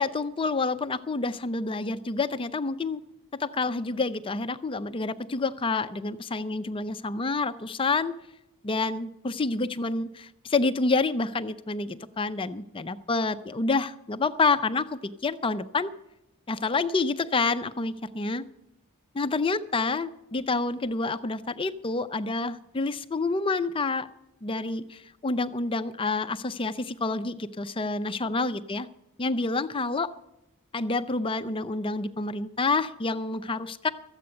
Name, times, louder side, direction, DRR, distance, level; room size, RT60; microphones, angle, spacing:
voice 1, 0.0-3.0 3.4-8.1 8.6-15.9 16.5-18.4 19.1-24.1 24.4-28.9 29.2-30.1 30.7-33.9, left 3 dB, 25° left, 11 dB, 0.5 m, -28 dB
14.0 x 8.2 x 7.7 m, 0.88 s
head